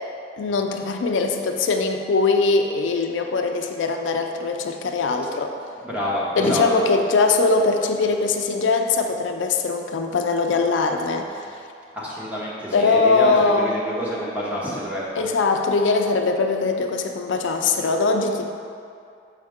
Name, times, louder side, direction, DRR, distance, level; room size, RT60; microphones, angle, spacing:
voice 1, 0.4-5.5 6.4-11.5 12.7-13.7 15.2-18.5, left 3 dB, 80° left, 4 dB, 0.4 m, -21 dB
voice 2, 5.8-6.6 11.9-15.3, equal, 5° right, -7 dB, 1.0 m, -28 dB
6.5 x 4.7 x 3.5 m, 2.4 s
head